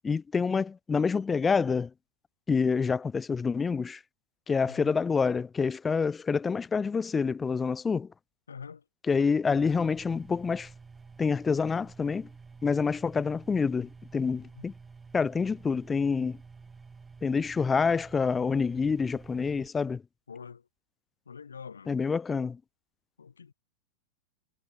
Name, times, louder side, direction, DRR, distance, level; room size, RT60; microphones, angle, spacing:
voice 1, 0.0-1.9 2.5-4.0 4.5-8.1 9.1-10.7 11.2-12.3 12.6-14.7 15.1-16.4 17.2-20.0 21.9-22.6, left 5 dB, 15° left, 0.5 m, -27 dB
voice 2, 8.5-8.8 14.6-14.7 20.3-20.6 21.3-21.9 23.2-23.5, left 6 dB, 70° left, 2.7 m, -45 dB
sound 1, 9.6-19.7, right 4 dB, 15° right, 1.8 m, -50 dB
figure-of-eight pair, 90°, 0 cm